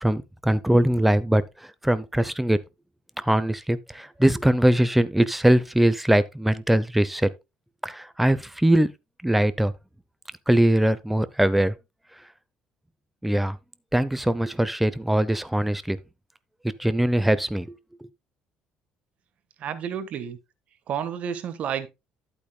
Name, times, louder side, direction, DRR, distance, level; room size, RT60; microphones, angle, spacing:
voice 1, 0.0-1.4 1.8-2.6 3.2-7.3 7.8-8.9 9.2-9.7 10.5-11.7 13.2-13.6 13.9-16.0 16.8-17.7, right 1 dB, 5° right, 0.7 m, -21 dB
voice 2, 19.6-20.4 20.9-21.9, right 8 dB, 50° right, 1.4 m, -30 dB
11.0 x 8.6 x 2.3 m
cardioid pair, 140°, 3 cm